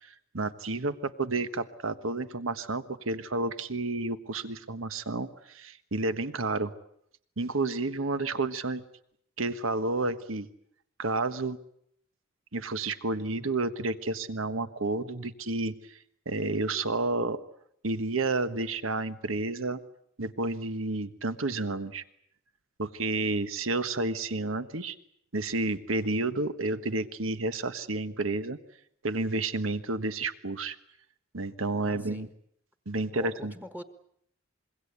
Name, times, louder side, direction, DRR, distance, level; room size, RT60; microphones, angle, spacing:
voice 1, 0.0-6.7 7.4-8.8 9.4-10.5 11.0-11.6 12.5-16.0 16.2-17.4 17.8-19.8 20.2-22.0 22.8-25.0 25.3-28.6 29.0-30.8 31.3-32.3 32.8-33.5, right 2 dB, 90° right, 11 dB, 1.4 m, -30 dB
voice 2, 31.8-32.3 33.1-33.8, equal, 10° right, 7 dB, 1.4 m, -43 dB
26.0 x 23.0 x 8.2 m, 0.70 s
head